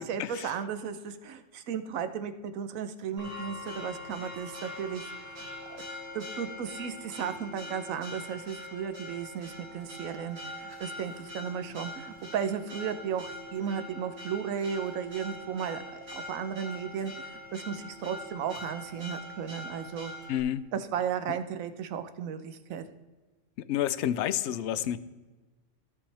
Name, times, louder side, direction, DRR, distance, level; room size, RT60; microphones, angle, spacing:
voice 1, 0.0-5.0 5.4-5.8 6.1-20.1 20.7-22.9, right 7 dB, 85° right, 10 dB, 1.2 m, -35 dB
Church bell, 3.2-20.4, left 1 dB, 65° right, 2.4 m, -43 dB
voice 2, 20.3-20.7 23.7-25.0, left 11 dB, 65° left, 15 dB, 0.8 m, -29 dB
15.5 x 5.4 x 3.3 m, 1.2 s
omnidirectional pair, 1.4 m